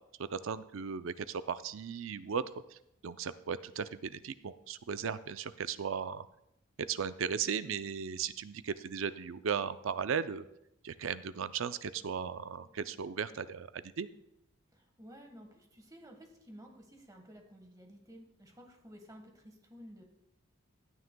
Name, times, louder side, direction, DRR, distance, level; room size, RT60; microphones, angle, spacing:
voice 1, 0.3-2.4 2.7-2.8 3.0-6.2 6.9-10.4 10.8-14.1, right 6 dB, 70° right, 13 dB, 0.5 m, -36 dB
voice 2, 14.7-20.0, equal, 15° right, 3 dB, 1.4 m, -53 dB
15.5 x 9.5 x 2.2 m, 0.81 s
head